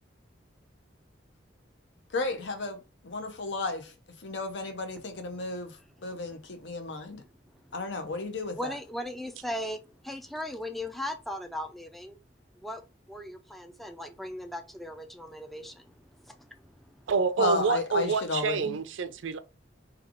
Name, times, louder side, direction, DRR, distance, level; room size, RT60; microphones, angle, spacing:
voice 1, 2.1-2.8 3.0-3.9 4.2-5.8 6.0-7.2 7.7-8.8 17.4-18.8, left 3 dB, 70° left, 0.7 m, -33 dB
voice 2, 8.6-9.8 10.0-12.2 12.6-12.8 13.1-15.9 16.3-16.5 16.8-16.9, left 1 dB, ahead, 0.3 m, -37 dB
voice 3, 17.1-19.4, right 5 dB, 85° right, 0.4 m, -27 dB
3.3 x 2.3 x 3.6 m
head